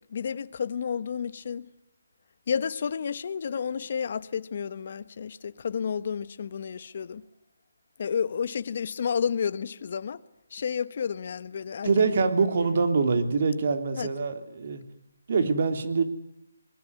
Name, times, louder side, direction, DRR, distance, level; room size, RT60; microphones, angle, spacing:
voice 1, 0.1-1.7 2.5-7.2 8.0-10.2 10.5-11.9 14.0-14.1, left 7 dB, 45° left, 1.2 m, -31 dB
voice 2, 11.8-14.8 15.3-16.0, right 4 dB, 45° right, 3.3 m, -24 dB
27.5 x 20.5 x 9.7 m
hypercardioid pair, 165°, 0 cm